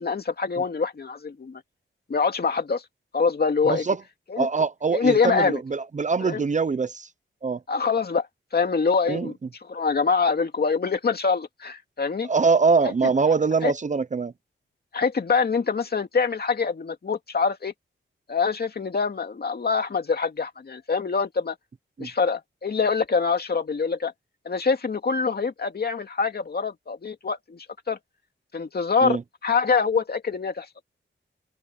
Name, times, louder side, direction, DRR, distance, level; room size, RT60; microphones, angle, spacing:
voice 1, 0.0-1.6 2.1-2.8 3.1-3.9 4.3-4.5 4.9-5.6 6.2-6.4 7.7-8.3 8.5-9.4 9.6-12.3 13.6-13.7 14.9-17.7 18.3-21.6 22.0-24.1 24.4-28.0 28.5-30.7, left 5 dB, 50° left, 2.3 m, -25 dB
voice 2, 3.6-4.0 4.4-7.1 7.4-7.6 9.1-9.3 12.2-14.3 22.0-22.1 29.0-29.2, right 4 dB, 35° right, 0.7 m, -23 dB
wide cardioid pair, 135°, 21 cm